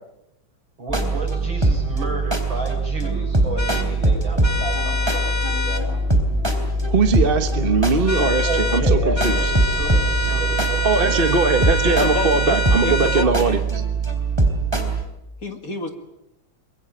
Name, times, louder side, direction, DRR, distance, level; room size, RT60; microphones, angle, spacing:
voice 1, 0.8-6.0 8.4-10.9, right 2 dB, 70° right, 1 dB, 7.6 m, -32 dB
sound 1, 0.9-15.0, right 2 dB, 10° right, 3.2 m, -22 dB
sound 2, 3.6-3.9 4.4-5.8 8.1-8.9 9.2-13.3, left 1 dB, 15° left, 1.0 m, -26 dB
sound 3, 5.5-11.6, left 2 dB, 75° left, 4.0 m, -38 dB
voice 2, 6.9-9.4 10.8-13.6, right 4 dB, 30° right, 8 dB, 1.3 m, -20 dB
voice 3, 11.8-12.6 12.8-13.6 15.4-15.9, left 3 dB, 45° left, 7 dB, 2.4 m, -28 dB
24.0 x 22.0 x 8.9 m, 0.87 s
omnidirectional pair, 2.2 m